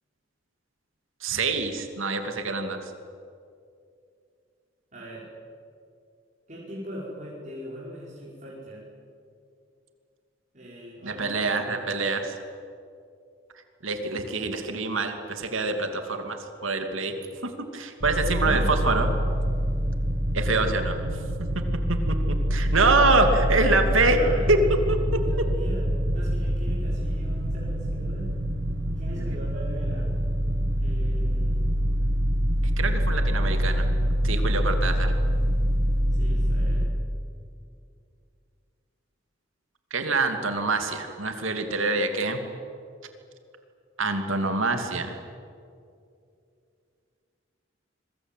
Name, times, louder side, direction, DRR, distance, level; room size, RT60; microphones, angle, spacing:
voice 1, 1.2-2.8 11.0-12.3 13.8-17.1 17.4-19.1 20.3-21.0 21.9-22.0 22.3-24.2 24.5-24.6 24.9-25.2 29.1-29.3 32.8-33.9 34.2-35.1 39.9-42.4 44.0-45.2, right 3 dB, 80° right, 6 dB, 2.7 m, -25 dB
voice 2, 4.9-5.3 6.5-8.8 10.5-11.8 18.3-18.8 24.2-24.4 25.1-28.3 29.0-30.1 30.7-31.6 36.1-36.9, equal, 35° right, -6 dB, 5.5 m, -40 dB
sound 1, 18.0-36.9, equal, 65° right, 2.4 m, -25 dB
27.0 x 22.0 x 9.3 m, 2.5 s
head